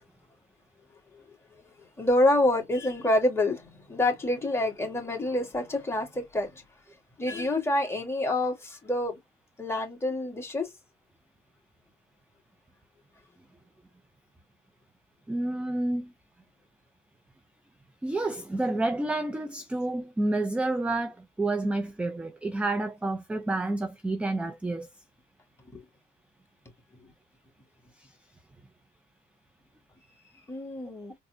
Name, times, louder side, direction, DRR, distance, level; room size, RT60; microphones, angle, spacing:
voice 1, 2.0-6.6 7.2-9.2 9.6-10.7 25.7-25.8 27.0-27.1 30.5-31.1, left 1 dB, 15° left, 1.7 m, -27 dB
voice 2, 15.3-16.1 18.0-24.9 28.0-28.1, right 2 dB, 5° right, 0.4 m, -29 dB
4.1 x 2.0 x 2.7 m
cardioid pair, 110°, 17 cm